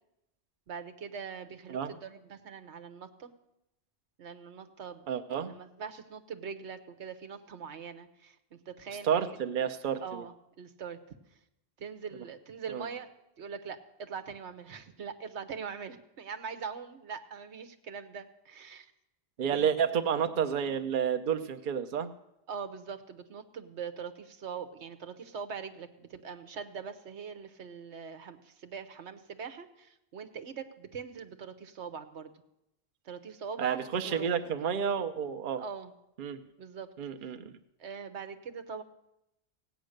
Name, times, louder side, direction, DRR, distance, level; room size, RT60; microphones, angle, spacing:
voice 1, 0.7-3.3 4.2-5.1 5.3-9.2 10.0-11.2 11.8-13.1 13.4-18.9 19.4-19.8 22.5-32.3 33.0-34.3 35.6-35.9 36.6-36.9 37.8-38.8, right 6 dB, 90° right, 9 dB, 1.3 m, -42 dB
voice 2, 5.1-5.5 9.0-10.2 12.7-12.8 19.4-22.1 33.6-35.6 36.2-36.4 37.0-37.6, right 7 dB, 50° right, 8 dB, 0.8 m, -30 dB
16.5 x 9.0 x 6.5 m, 0.86 s
omnidirectional pair, 1.1 m